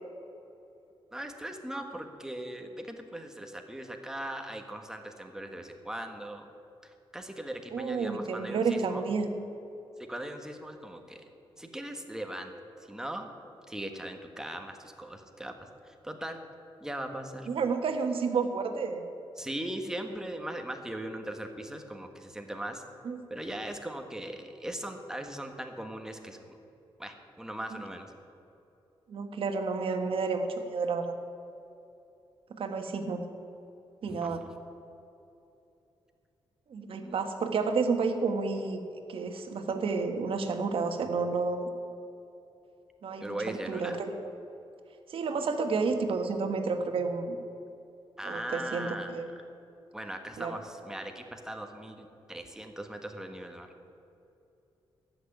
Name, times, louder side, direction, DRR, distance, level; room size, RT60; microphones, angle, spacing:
voice 1, 1.1-6.5 6.8-9.1 10.0-11.3 11.6-12.5 12.9-13.3 13.7-15.5 15.8-16.4 16.8-17.5 19.4-22.8 23.3-26.6 27.0-28.1 34.1-34.4 37.0-37.3 43.2-44.0 48.2-49.5 49.9-53.7, right 1 dB, 5° right, 5 dB, 1.4 m, -39 dB
voice 2, 7.7-9.3 17.5-19.0 23.0-23.2 29.1-31.1 32.5-33.2 34.0-34.4 36.7-38.8 39.1-41.7 43.0-44.1 45.1-47.4 48.2-49.3 50.4-50.6, right 4 dB, 70° right, 6 dB, 1.4 m, -30 dB
14.5 x 6.4 x 9.9 m, 2.8 s
cardioid pair, 85°, 10 cm